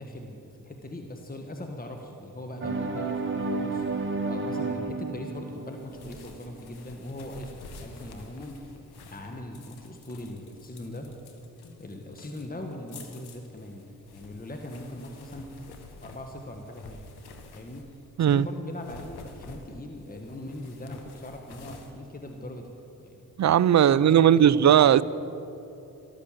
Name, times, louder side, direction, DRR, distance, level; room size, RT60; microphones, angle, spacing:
voice 1, 0.0-8.7 9.0-11.1 11.8-13.8 14.1-17.0 17.5-17.9 18.3-22.7 23.0-23.5 23.8-24.9, left 1 dB, 25° left, 3 dB, 1.5 m, -40 dB
sound 1, 2.6-6.4, right 3 dB, 30° right, 2.0 m, -31 dB
sound 2, 5.5-18.1 18.6-23.0, left 3 dB, 85° left, 1.6 m, -49 dB
voice 2, 23.4-25.0, right 10 dB, 45° right, 18 dB, 0.5 m, -18 dB
14.0 x 13.0 x 7.4 m, 2.9 s
cardioid pair, 60°, 38 cm